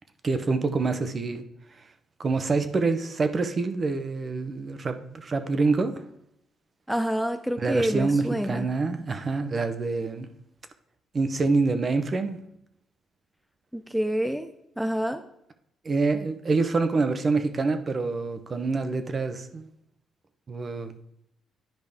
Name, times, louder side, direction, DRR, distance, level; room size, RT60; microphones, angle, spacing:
voice 1, 0.2-1.4 2.2-5.9 7.6-10.3 11.1-12.4 15.8-19.7 20.5-21.0, right 3 dB, 40° right, 9 dB, 0.9 m, -26 dB
voice 2, 6.9-8.7 13.7-14.5 14.8-15.2, equal, 5° right, 7 dB, 0.5 m, -27 dB
10.5 x 5.1 x 3.6 m, 0.76 s
cardioid pair, 90°, 0 cm